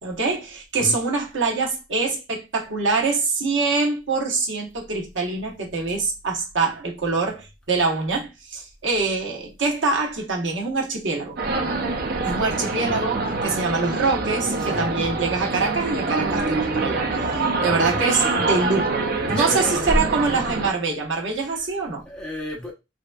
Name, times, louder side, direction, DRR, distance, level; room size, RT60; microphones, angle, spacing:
voice 1, 0.0-11.4 12.2-17.0 17.6-22.0, right 3 dB, 85° right, 0.9 m, -24 dB
sound 1, 11.4-20.7, right 3 dB, 55° right, 0.5 m, -25 dB
voice 2, 17.6-18.0 18.3-18.8 19.2-19.9 21.5-21.6 22.1-22.7, left 1 dB, 5° left, 0.8 m, -34 dB
3.2 x 2.8 x 2.2 m
head